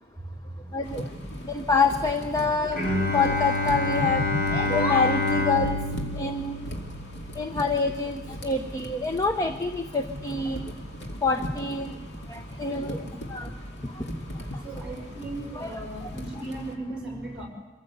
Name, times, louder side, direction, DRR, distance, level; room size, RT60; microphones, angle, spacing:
voice 1, 0.7-1.1 1.5-5.8 6.1-6.6 7.4-10.7 11.2-12.0 12.3-13.0 13.3-13.5 14.0-14.1 15.5-15.8, left 3 dB, 20° left, 5 dB, 0.8 m, -26 dB
sound 1, 0.8-16.8, equal, 85° left, 2.4 m, -38 dB
Bowed string instrument, 2.7-8.4, left 2 dB, 55° left, 3.4 m, -28 dB
voice 2, 12.7-13.1 14.1-14.2 14.6-17.5, right 1 dB, 5° right, -1 dB, 5.6 m, -38 dB
25.5 x 15.5 x 8.1 m, 1.2 s
head